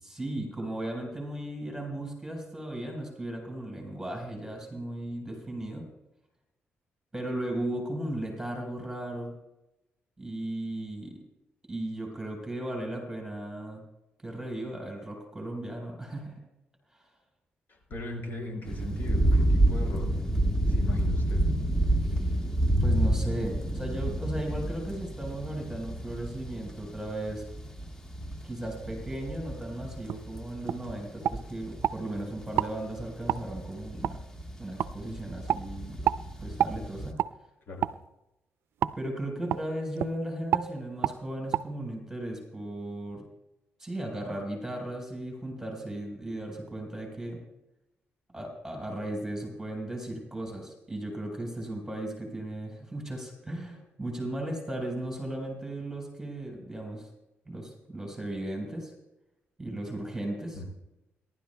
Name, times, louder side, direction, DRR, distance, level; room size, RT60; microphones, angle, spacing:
voice 1, 0.0-5.9 7.1-9.3 10.2-11.2 11.7-13.8 14.2-16.4 22.0-22.3 22.8-27.4 28.4-34.2 34.6-36.0 36.4-37.2 39.0-43.2 43.8-47.4 48.3-57.1 57.5-58.9 59.6-60.6, right 1 dB, 10° right, 1 dB, 4.3 m, -36 dB
voice 2, 17.7-20.1 20.7-21.4 37.7-37.8 60.5-60.7, left 1 dB, 55° left, 0 dB, 5.9 m, -38 dB
sound 1, 18.7-37.1, right 1 dB, 15° left, 1.4 m, -29 dB
sound 2, 30.1-30.2 30.7-30.8 31.2-32.0 32.5-32.7 33.3-33.4 34.0-34.2 34.8-34.9 35.5-35.6 36.0-36.2 36.6-36.8 37.2-37.3 37.8-38.0 38.8-39.0 39.5-39.6 40.0-40.1 40.5-40.7 41.0-41.2 41.5-41.6, right 10 dB, 80° right, 0.4 m, -27 dB
29.0 x 12.0 x 2.3 m, 0.92 s
cardioid pair, 120°, 4 cm